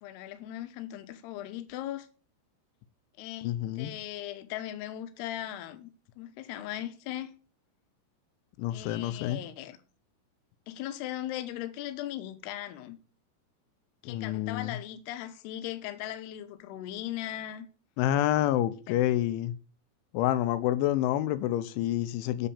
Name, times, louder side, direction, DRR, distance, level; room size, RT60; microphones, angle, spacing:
voice 1, 0.0-2.1 3.2-5.9 6.2-7.3 8.7-9.8 10.7-13.0 14.0-17.7 18.9-19.0, left 13 dB, 70° left, 2.8 m, -38 dB
voice 2, 3.4-3.9 8.6-9.4 14.1-14.8 18.0-19.5 20.1-22.5, left 13 dB, 90° left, 3.2 m, -28 dB
8.7 x 7.2 x 7.0 m
omnidirectional pair, 5.3 m